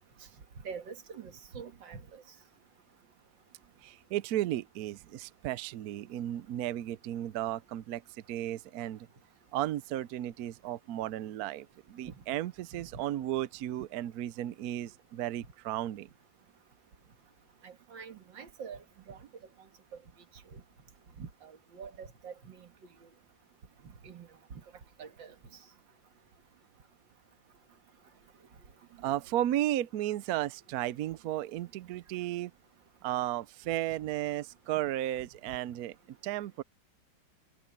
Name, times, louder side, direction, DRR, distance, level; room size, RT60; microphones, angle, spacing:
voice 1, 0.6-2.2 12.1-12.2 12.9-13.0 17.6-19.2 20.5-20.6 21.2-22.7 24.0-24.3 25.0-25.3, right 6 dB, 85° right, 2.3 m, -45 dB
voice 2, 3.8-9.1 9.5-16.1 29.0-32.5 33.0-36.6, right 13 dB, 70° right, 1.0 m, -34 dB
omnidirectional pair, 2.0 m